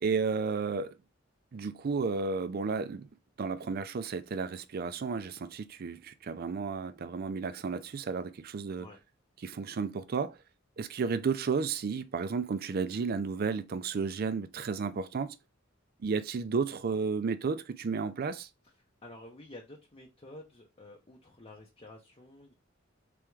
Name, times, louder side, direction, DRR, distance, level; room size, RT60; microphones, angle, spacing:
voice 1, 0.0-1.0 1.5-3.1 3.4-8.9 9.4-10.4 10.8-15.4 16.0-18.5, right 5 dB, 50° right, 0.4 m, -32 dB
voice 2, 19.0-22.5, left 1 dB, 30° left, 0.7 m, -50 dB
3.5 x 3.4 x 3.1 m
head